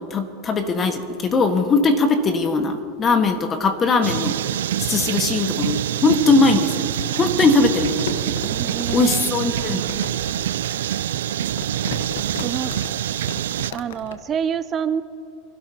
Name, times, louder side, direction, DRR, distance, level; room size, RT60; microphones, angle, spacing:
voice 1, 0.0-4.4 4.8-6.9 7.1-8.0 8.9-9.8, left 3 dB, 30° left, 6 dB, 1.6 m, -20 dB
sound 1, 4.0-13.7, right 11 dB, 85° right, 0.3 m, -25 dB
Crumpling crinkling, 7.4-14.2, left 6 dB, 85° left, 1.2 m, -36 dB
voice 2, 8.4-9.5 12.4-12.7 13.7-15.0, right 8 dB, 30° right, 12 dB, 0.5 m, -27 dB
26.5 x 12.5 x 2.9 m, 2.7 s
supercardioid pair, 115°, 0 cm